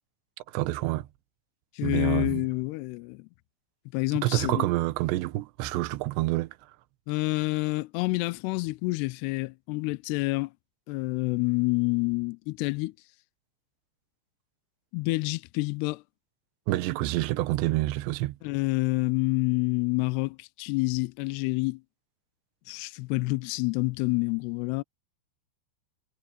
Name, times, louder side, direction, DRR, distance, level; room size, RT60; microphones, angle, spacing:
voice 1, 0.5-1.1 1.8-2.4 4.2-6.6 16.7-18.4, right 17 dB, 75° right, 2.9 m, -27 dB
voice 2, 1.8-3.3 3.9-4.7 7.1-10.5 10.9-12.9 14.9-16.0 18.4-21.8 22.7-24.8, left 24 dB, 90° left, 2.3 m, -28 dB
omnidirectional pair, 5.5 m